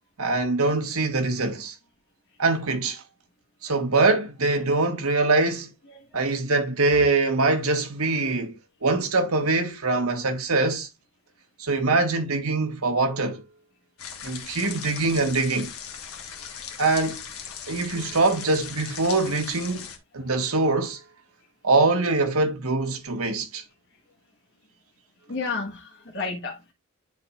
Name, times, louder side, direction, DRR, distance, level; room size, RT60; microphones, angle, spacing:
voice 1, 0.2-1.7 2.4-3.0 3.6-5.7 6.1-8.6 8.8-10.9 11.6-13.4 14.2-15.7 16.8-17.2 17.7-19.9 20.1-21.0 21.6-23.6, right 3 dB, 85° right, 1.5 m, -23 dB
sound 1, 14.0-20.0, left 7 dB, 75° left, 1.4 m, -39 dB
voice 2, 25.3-26.7, left 4 dB, 55° left, 1.4 m, -32 dB
10.0 x 4.2 x 2.4 m
head